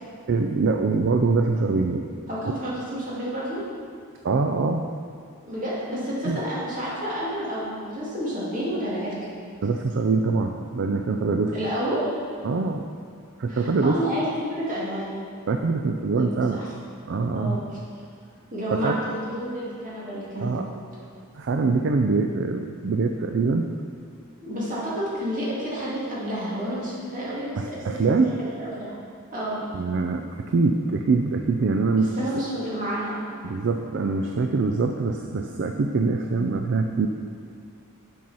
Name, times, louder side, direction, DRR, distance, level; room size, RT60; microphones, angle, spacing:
voice 1, 0.3-2.0 4.2-4.9 6.2-6.4 9.6-11.5 12.4-12.9 13.4-14.0 15.5-16.6 17.0-17.6 18.7-19.0 20.4-20.7 21.3-23.7 27.6-28.3 29.7-32.2 33.4-37.1, right 4 dB, 55° right, 4 dB, 0.4 m, -24 dB
voice 2, 2.3-3.6 5.4-9.3 11.5-12.0 13.5-15.2 16.2-16.7 17.3-17.6 18.5-20.6 24.4-29.0 29.3-29.6 32.0-33.2, equal, 35° right, -8 dB, 2.3 m, -30 dB
7.7 x 5.7 x 5.5 m, 2.2 s
head